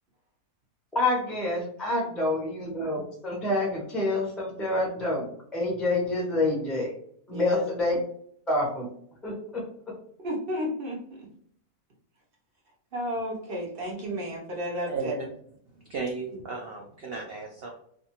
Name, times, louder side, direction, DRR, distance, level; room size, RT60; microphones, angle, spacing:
voice 1, 0.9-6.9 7.3-8.0 8.5-8.9 9.2-9.6, left 2 dB, ahead, -2 dB, 0.3 m, -27 dB
voice 2, 2.0-2.4 7.3-7.6 10.2-11.3 12.9-15.3, equal, 50° right, -2 dB, 0.7 m, -33 dB
voice 3, 14.9-15.3 15.8-17.7, right 4 dB, 85° right, 0 dB, 0.5 m, -34 dB
2.5 x 2.4 x 2.8 m, 0.66 s
omnidirectional pair, 1.6 m